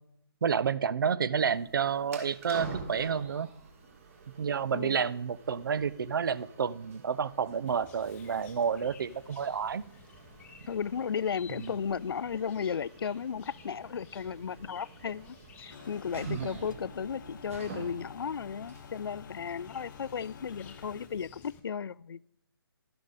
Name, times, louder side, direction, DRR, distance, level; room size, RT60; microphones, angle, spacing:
voice 1, 0.4-3.5 4.4-9.8 11.6-11.7 16.3-16.5, right 7 dB, 55° right, 0.6 m, -30 dB
sound 1, 1.4-21.3, right 4 dB, 35° right, 1.8 m, -49 dB
voice 2, 4.7-5.1 10.7-22.2, left 7 dB, 65° left, 0.4 m, -35 dB
Chirp tweet, 7.7-21.6, left 6 dB, 10° left, 0.7 m, -56 dB
sound 2, 15.7-21.1, left 7 dB, 50° left, 0.9 m, -50 dB
11.5 x 11.5 x 4.0 m
hypercardioid pair, 155°, 13 cm